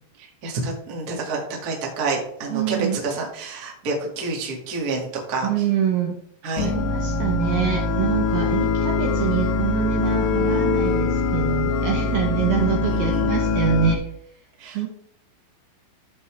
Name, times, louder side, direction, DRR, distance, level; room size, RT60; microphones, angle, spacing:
voice 1, 0.2-5.5 6.4-6.7 12.9-13.3 14.6-14.9, right 3 dB, 55° right, -2 dB, 1.0 m, -29 dB
voice 2, 2.5-3.0 5.4-6.2 6.6-14.0 14.7-14.9, right 9 dB, 80° right, 1 dB, 2.2 m, -25 dB
sound 1, 6.6-14.0, left 4 dB, 90° left, 3.5 m, -23 dB
14.0 x 6.0 x 3.4 m, 0.70 s
omnidirectional pair, 5.6 m